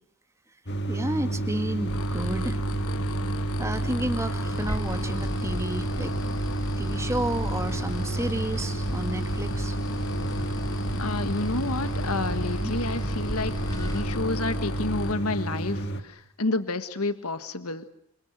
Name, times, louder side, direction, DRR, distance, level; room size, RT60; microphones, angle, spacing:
sound 1, 0.7-16.0, right 2 dB, 50° left, 2.3 m, -30 dB
voice 1, 0.9-2.6 3.6-6.1 6.8-9.8 12.6-12.7, right 1 dB, 15° right, 8 dB, 2.1 m, -31 dB
sound 2, 1.9-15.1, left 2 dB, 70° left, 1.5 m, -36 dB
sound 3, 4.4-14.0, equal, 15° left, 5.7 m, -37 dB
voice 2, 11.0-17.9, left 2 dB, 85° left, 11 dB, 1.6 m, -30 dB
28.5 x 27.0 x 6.4 m, 0.69 s
head